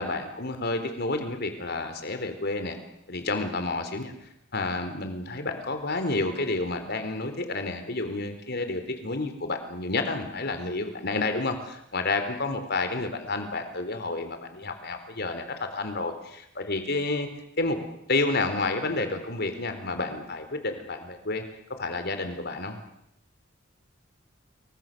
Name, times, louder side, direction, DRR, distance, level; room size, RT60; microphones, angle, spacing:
voice 1, 0.0-2.8 3.1-4.1 4.5-17.3 17.6-17.8 18.1-21.4 21.8-22.8, left 3 dB, 55° left, 7 dB, 4.0 m, -30 dB
28.0 x 23.5 x 6.9 m, 0.77 s
head